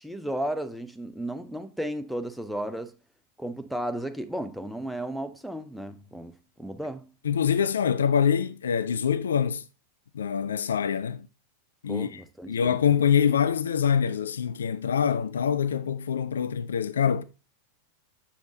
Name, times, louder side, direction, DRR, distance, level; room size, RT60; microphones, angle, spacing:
voice 1, 0.0-2.9 3.4-6.3 6.6-7.1 11.9-12.8, right 1 dB, ahead, 0.5 m, -34 dB
voice 2, 7.2-9.6 10.1-11.3 11.8-12.2 12.5-17.2, left 8 dB, 65° left, 0.4 m, -25 dB
7.2 x 5.8 x 2.6 m
figure-of-eight pair, 90°, 0 cm